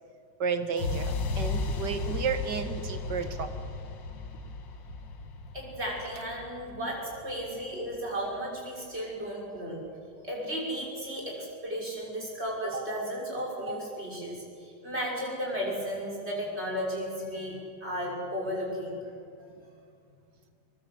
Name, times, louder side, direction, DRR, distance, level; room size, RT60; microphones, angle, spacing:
voice 1, 0.4-3.6, right 5 dB, 70° right, 8 dB, 2.1 m, -32 dB
sound 1, 0.8-8.7, left 3 dB, 90° left, 2.2 m, -35 dB
voice 2, 5.5-9.8 10.2-19.0, equal, 35° right, -3 dB, 6.4 m, -34 dB
23.0 x 22.0 x 7.9 m, 2.2 s
omnidirectional pair, 1.9 m